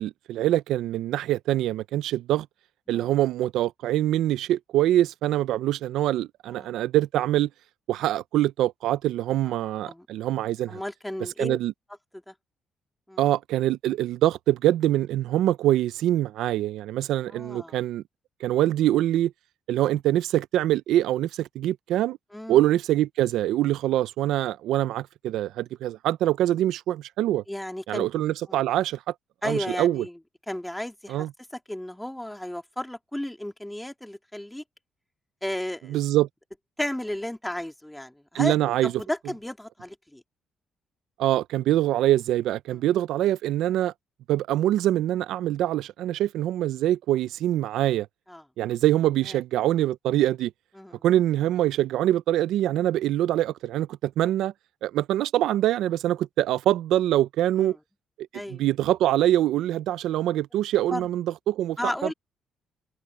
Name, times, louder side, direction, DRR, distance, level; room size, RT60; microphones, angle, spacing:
voice 1, 0.0-2.5 2.9-7.5 7.9-10.8 11.4-11.7 13.2-18.0 18.4-19.3 19.7-22.2 22.5-27.4 27.9-29.0 29.4-30.0 31.1-31.3 35.9-36.3 38.3-38.9 41.2-43.9 44.3-48.1 48.6-50.5 51.0-54.5 54.8-57.8 58.5-61.8, right 13 dB, 85° right, 0.5 m, -24 dB
voice 2, 10.7-11.6 12.1-12.3 13.1-13.3 17.3-17.7 22.3-22.6 27.5-28.1 28.5-28.6 29.4-30.2 30.5-31.3 31.7-34.6 35.4-36.0 36.8-38.6 38.8-40.2 42.7-42.8 48.3-48.4 49.3-49.4 50.8-51.0 57.6-57.8 58.3-58.6 60.9-61.1 61.8-62.1, left 1 dB, 5° left, 2.9 m, -33 dB
cardioid pair, 90°, 0 cm